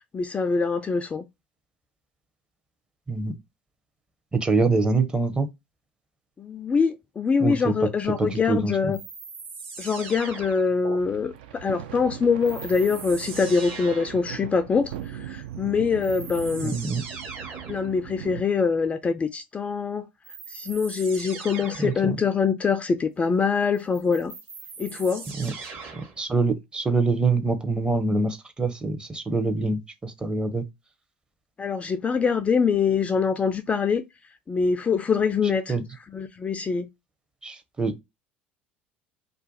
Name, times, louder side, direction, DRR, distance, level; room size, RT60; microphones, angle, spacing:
voice 1, 0.1-1.2 6.4-9.0 9.8-16.7 17.7-20.1 20.5-24.3 24.8-25.3 31.6-34.0 34.5-35.7 36.1-36.9, left 5 dB, 20° left, 0.3 m, -24 dB
voice 2, 4.3-5.5 7.4-7.7 8.2-8.9 16.6-17.0 21.8-22.2 25.4-25.5 25.9-30.7 35.7-35.8 37.4-38.0, right 3 dB, 15° right, 0.6 m, -25 dB
sound 1, 8.9-11.0 12.4-14.3 15.5-15.6 16.0-17.9 20.2-22.0 23.7-26.2, right 4 dB, 40° right, 1.0 m, -40 dB
sound 2, 11.0-18.4, right 11 dB, 65° right, 0.4 m, -39 dB
2.5 x 2.2 x 3.9 m
figure-of-eight pair, 65°, 6 cm